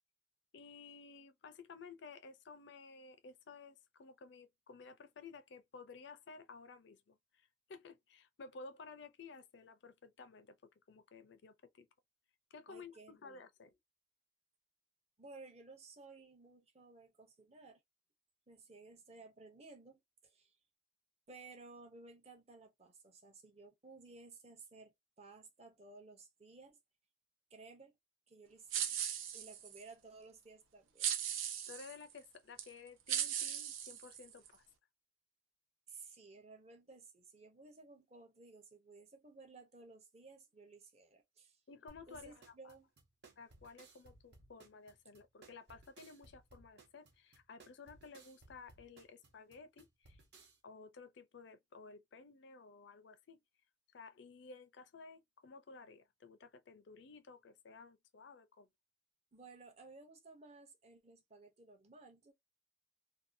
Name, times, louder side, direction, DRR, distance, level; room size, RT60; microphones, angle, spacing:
voice 1, 0.5-7.2 7.7-10.6 10.9-11.9 12.5-13.7 31.7-34.6 41.7-42.7 43.4-50.2 50.6-53.4 53.9-58.7, left 4 dB, 60° left, 0.4 m, -55 dB
voice 2, 12.7-13.4 15.2-17.8 18.5-20.6 21.3-26.8 27.5-27.9 28.3-29.0 29.3-31.1 35.9-41.6 42.1-42.9 59.3-62.3, right 3 dB, 30° right, 0.6 m, -57 dB
sound 1, 28.7-29.8 31.0-32.0 32.6-32.7 33.1-34.5, right 9 dB, 85° right, 0.5 m, -38 dB
sound 2, 41.9-50.6, right 3 dB, 55° right, 0.8 m, -62 dB
2.6 x 2.2 x 2.5 m
head